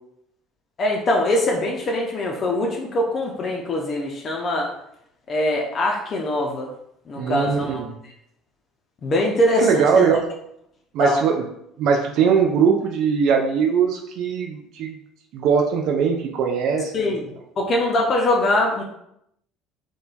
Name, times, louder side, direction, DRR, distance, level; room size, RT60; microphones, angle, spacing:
voice 1, 0.8-4.7 5.3-6.7 7.1-8.1 9.0-10.0 11.0-11.2 16.9-17.3 17.6-18.8, left 1 dB, 45° left, 0 dB, 0.5 m, -22 dB
voice 2, 7.2-8.0 9.6-10.3 10.9-11.4 11.8-15.0 15.3-17.2, right 6 dB, 60° right, 2 dB, 0.3 m, -20 dB
3.0 x 2.2 x 2.4 m, 0.76 s
hypercardioid pair, 65°, 0 cm